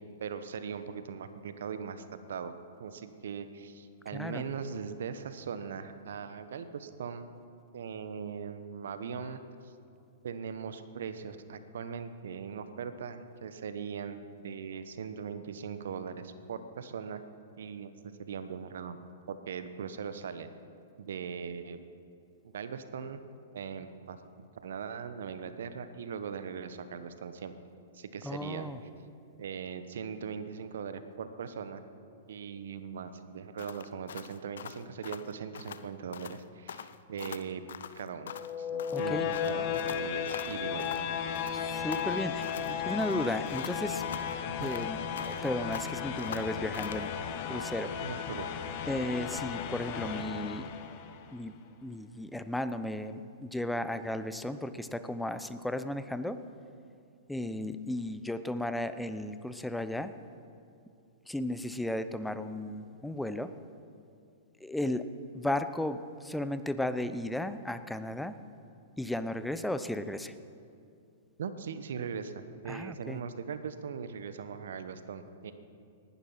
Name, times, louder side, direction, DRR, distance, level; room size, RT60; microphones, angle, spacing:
voice 1, 0.0-2.5 2.8-7.3 7.7-9.7 10.2-17.2 17.6-19.0 19.3-20.5 21.0-21.8 22.4-23.2 23.5-24.2 24.6-27.5 27.9-28.7 29.4-31.8 32.3-37.6 38.0-41.1 44.5-44.7 48.0-48.5 71.4-75.5, right 6 dB, 70° right, 11 dB, 1.1 m, -40 dB
voice 2, 4.1-4.4 28.2-28.8 38.9-39.3 41.5-44.0 44.6-45.0 45.3-47.1 47.5-47.9 48.9-50.7 51.3-51.6 51.8-56.4 57.3-60.1 61.3-63.5 64.6-65.1 65.3-68.4 69.0-70.3 72.7-73.2, left 1 dB, 5° left, 11 dB, 0.8 m, -34 dB
sound 1, 33.6-35.9 36.1-36.4 36.7-38.5 38.8-41.1 41.3-42.7 43.0-45.5 45.7-47.1, left 8 dB, 70° left, 0.6 m, -44 dB
sound 2, 38.3-51.2, left 8 dB, 50° left, 1.2 m, -35 dB
19.0 x 11.5 x 5.8 m, 2.5 s
hypercardioid pair, 110°, 0 cm